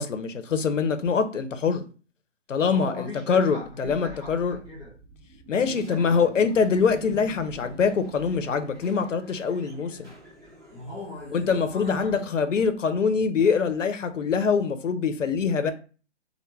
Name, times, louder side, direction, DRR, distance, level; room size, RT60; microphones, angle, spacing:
voice 1, 0.0-1.8 2.5-4.6 5.5-10.1 11.3-15.7, left 5 dB, 90° left, 0.6 m, -24 dB
voice 2, 2.7-4.9 5.5-6.3 10.7-12.4, left 2 dB, 15° left, 1.3 m, -39 dB
sound 1, 4.0-12.7, equal, 20° right, 1.4 m, -47 dB
3.3 x 2.1 x 3.1 m
hypercardioid pair, 160°, 37 cm